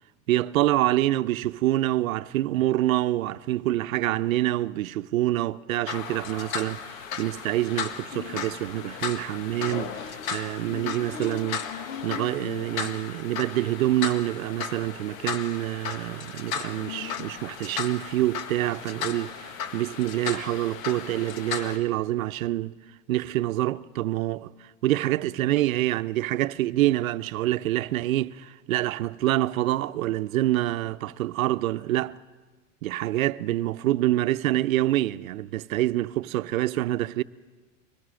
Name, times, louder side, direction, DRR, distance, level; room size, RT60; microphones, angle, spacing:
voice 1, 0.3-11.6 12.0-22.7 23.1-24.5 24.8-32.2 32.8-37.2, right 15 dB, 90° right, 0.7 m, -26 dB
sound 1, 5.9-21.8, left 7 dB, 80° left, 1.8 m, -35 dB
24.0 x 20.0 x 6.4 m
supercardioid pair, 120°, 40 cm